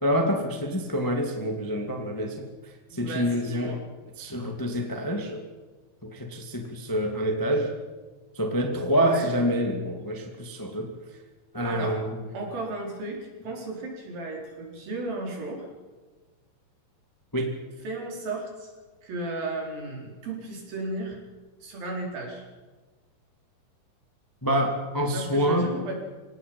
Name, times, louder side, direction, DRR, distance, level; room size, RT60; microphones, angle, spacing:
voice 1, 0.0-3.8 4.2-5.4 6.0-7.7 8.3-10.9 11.5-12.2 17.3-17.5 24.4-25.7, equal, 10° left, 3 dB, 1.5 m, -27 dB
voice 2, 2.9-3.8 8.9-9.3 11.6-12.0 12.3-15.7 17.8-18.7 19.0-21.2 21.6-22.4 25.1-26.0, right 2 dB, 65° right, 0 dB, 6.1 m, -34 dB
26.5 x 18.0 x 5.5 m, 1.3 s
omnidirectional pair, 4.5 m